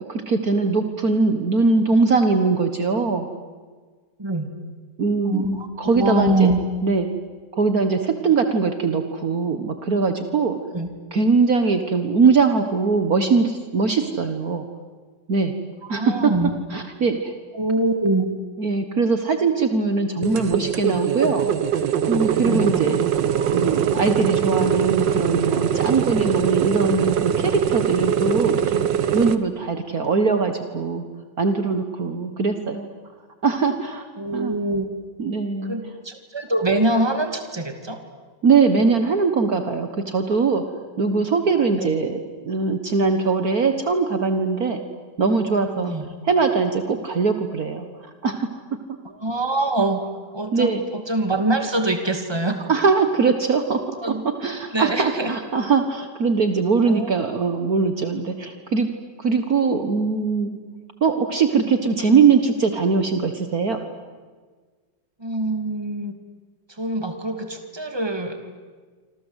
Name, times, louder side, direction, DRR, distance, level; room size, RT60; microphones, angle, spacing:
voice 1, 0.0-3.3 5.0-6.5 6.8-7.1 7.5-10.6 11.1-14.7 15.3-15.5 15.9-16.3 16.7-17.3 18.6-21.5 22.1-23.0 23.5-28.8 29.1-31.0 31.4-32.9 33.4-34.1 34.3-34.5 35.2-35.7 38.4-40.6 41.0-44.8 45.2-45.9 46.2-47.9 48.2-48.5 50.5-50.8 52.7-54.0 54.4-58.9 59.2-60.6 61.0-63.8, right 4 dB, 55° right, 7 dB, 1.9 m, -21 dB
voice 2, 4.2-4.5 5.2-6.6 10.7-10.9 15.8-16.5 17.5-18.3 22.4-22.7 34.2-34.9 35.6-38.0 41.7-41.9 45.8-46.1 49.2-50.1 50.3-52.7 54.0-54.2 54.7-55.3 56.8-57.1 58.4-58.5 65.2-66.1 66.7-68.4, right 2 dB, 15° right, 6 dB, 2.6 m, -24 dB
sound 1, 20.2-29.4, right 9 dB, 80° right, 1.8 m, -22 dB
26.5 x 26.5 x 8.2 m, 1.5 s
omnidirectional pair, 2.0 m